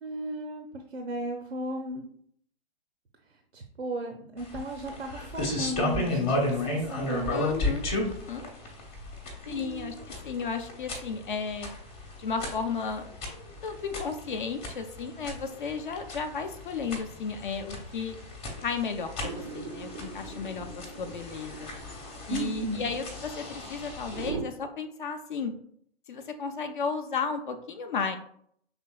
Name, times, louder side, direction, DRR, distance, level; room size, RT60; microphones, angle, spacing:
voice 1, 0.0-2.1 3.5-7.3 9.5-10.1 22.3-22.8, right 1 dB, 85° right, 3 dB, 0.6 m, -35 dB
sound 1, 4.4-24.3, left 2 dB, 20° left, 0.9 m, -34 dB
voice 2, 7.3-8.5 9.5-9.9 10.2-11.7 12.2-13.1 13.5-18.2 18.6-21.7 22.3-25.5 26.1-28.2, left 5 dB, 50° left, 7 dB, 0.6 m, -34 dB
sound 2, 19.2-24.4, right 5 dB, 15° right, 0.4 m, -41 dB
5.9 x 3.3 x 2.3 m, 0.66 s
figure-of-eight pair, 120°, 31 cm